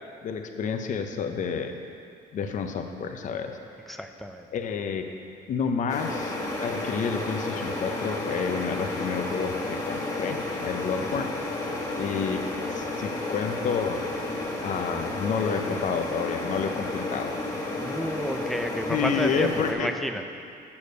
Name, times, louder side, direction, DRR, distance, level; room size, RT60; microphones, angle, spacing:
voice 1, 0.2-1.8 2.3-3.6 3.9-4.0 4.5-5.1 5.5-11.3 12.0-14.1 14.6-17.3 18.9-20.2, left 6 dB, 50° left, 6 dB, 0.8 m, -30 dB
voice 2, 3.9-4.4 11.2-11.3 17.8-20.3, equal, ahead, 6 dB, 0.5 m, -31 dB
sound 1, 5.9-19.7, left 2 dB, 20° left, 1.6 m, -32 dB
7.1 x 6.6 x 6.5 m, 2.4 s
cardioid pair, 110°, 17 cm